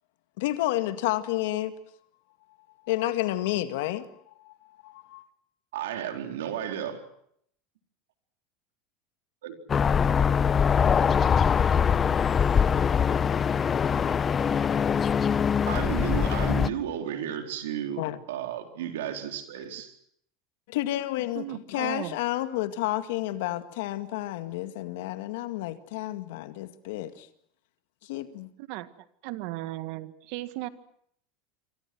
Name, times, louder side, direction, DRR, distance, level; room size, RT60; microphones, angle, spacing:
voice 1, 0.4-1.7 2.8-4.1 4.4-4.5 4.8-5.2 18.0-18.2 20.7-27.3 28.0-28.5, left 15 dB, 75° left, 2.0 m, -30 dB
voice 2, 5.7-7.0 9.4-9.6 15.7-20.0, right 9 dB, 80° right, 4.1 m, -33 dB
sound 1, 9.7-16.7, left 7 dB, 30° left, 0.9 m, -23 dB
voice 3, 21.3-22.2 28.6-28.9 29.2-30.7, right 17 dB, 65° right, 1.8 m, -36 dB
27.5 x 25.0 x 6.2 m
hypercardioid pair, 100°, 0 cm